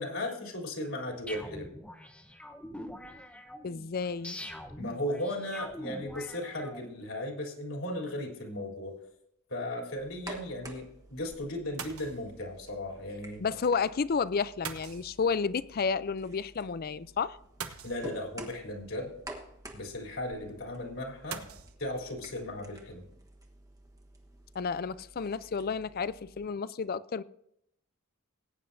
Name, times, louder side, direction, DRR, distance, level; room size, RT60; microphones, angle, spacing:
voice 1, 0.0-1.7 4.8-8.9 9.5-13.4 17.8-19.1 19.7-21.4 21.8-23.1, left 1 dB, 65° left, 3.4 m, -36 dB
sound 1, 1.3-7.1, left 1 dB, 5° left, 0.9 m, -44 dB
voice 2, 3.6-4.4 13.4-17.4 24.5-27.2, left 5 dB, 45° left, 0.4 m, -31 dB
sound 2, 8.8-9.1 11.8-12.4 14.6-15.6 17.6-18.5 21.3-21.7, right 7 dB, 80° right, 1.1 m, -42 dB
sound 3, 10.0-26.5, right 1 dB, 15° right, 1.3 m, -51 dB
20.0 x 9.6 x 2.7 m
head